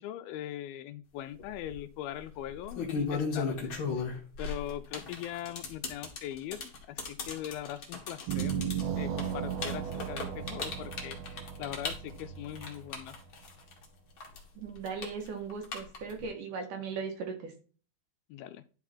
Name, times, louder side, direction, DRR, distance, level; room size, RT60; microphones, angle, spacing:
voice 1, 0.0-3.7 4.4-13.2 18.3-18.6, left 12 dB, 80° left, 12 dB, 2.3 m, -41 dB
sound 1, 1.4-1.7 2.5-13.8 14.2-16.2, left 5 dB, 45° left, 2.0 m, -36 dB
sound 2, 8.3-13.5, right 9 dB, 90° right, 2.9 m, -36 dB
voice 2, 14.6-17.5, right 5 dB, 65° right, 4 dB, 2.7 m, -38 dB
11.5 x 4.8 x 4.4 m, 0.39 s
omnidirectional pair, 4.3 m